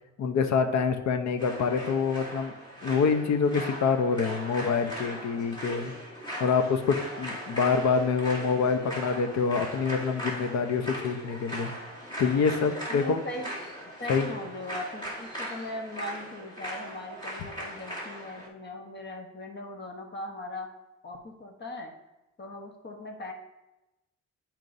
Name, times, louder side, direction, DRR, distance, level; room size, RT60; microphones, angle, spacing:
voice 1, 0.2-2.5 2.8-5.9 6.4-11.7 12.2-13.2 14.1-14.3, left 5 dB, 65° left, 7 dB, 0.8 m, -26 dB
sound 1, 1.4-18.5, equal, 15° left, 2.7 m, -39 dB
voice 2, 12.9-13.5 14.0-20.7 21.0-21.9 22.4-23.3, left 1 dB, 35° left, 2 dB, 1.1 m, -39 dB
12.0 x 4.5 x 2.7 m, 0.98 s
cardioid pair, 90°, 30 cm